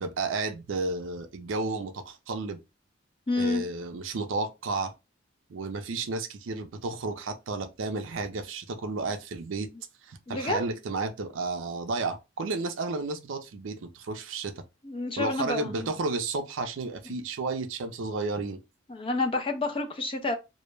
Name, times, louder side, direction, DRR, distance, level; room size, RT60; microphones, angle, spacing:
voice 1, 0.0-2.6 3.4-4.9 5.5-9.7 10.1-14.5 15.2-18.6, right 3 dB, 80° right, 0.5 m, -32 dB
voice 2, 3.3-3.6 10.3-10.6 14.8-15.9 18.9-20.4, left 2 dB, 25° left, 0.4 m, -29 dB
2.2 x 2.0 x 3.1 m
head